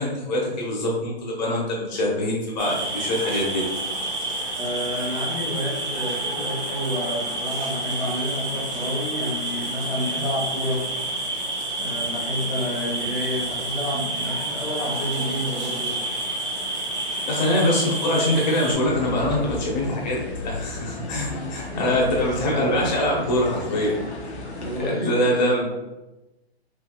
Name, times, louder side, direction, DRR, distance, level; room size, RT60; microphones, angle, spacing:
voice 1, 0.0-3.6 17.3-24.0 24.6-25.6, left 1 dB, 40° left, -2 dB, 1.1 m, -24 dB
sound 1, 2.6-18.7, right 2 dB, 20° right, 0.9 m, -29 dB
voice 2, 4.6-10.8 11.8-15.9 21.7-21.8 24.6-25.5, equal, 10° left, -12 dB, 0.3 m, -29 dB
sound 2, 18.8-24.8, left 2 dB, 80° left, 0.9 m, -34 dB
3.5 x 2.7 x 2.4 m, 1.0 s
hypercardioid pair, 140°, 32 cm